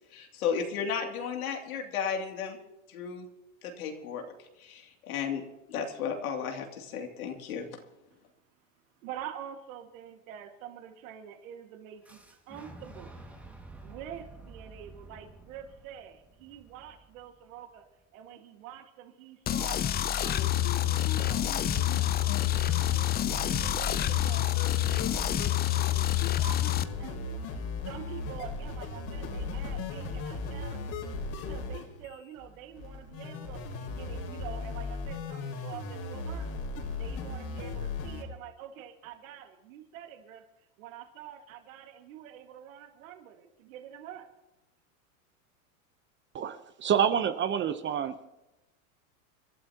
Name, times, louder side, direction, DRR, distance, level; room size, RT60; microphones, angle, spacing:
voice 1, 0.1-2.6 2.9-3.2 3.6-4.2 4.6-5.4 5.7-7.7, left 7 dB, 85° left, 2 dB, 2.9 m, -34 dB
voice 2, 9.0-13.2 13.8-17.8 18.1-20.5 21.2-23.0 23.3-31.0 31.3-36.6 37.0-40.4 40.8-44.3, right 10 dB, 70° right, 4 dB, 2.1 m, -46 dB
Boom, 12.0-17.9, right 2 dB, 5° right, 2.0 m, -50 dB
sound 1, 19.5-26.8, left 13 dB, 25° left, 0.6 m, -27 dB
sound 2, 20.2-38.2, left 3 dB, 45° left, 3.5 m, -37 dB
voice 3, 46.3-48.3, right 8 dB, 25° right, 10 dB, 0.9 m, -28 dB
28.5 x 12.5 x 3.0 m, 0.95 s
supercardioid pair, 115°, 42 cm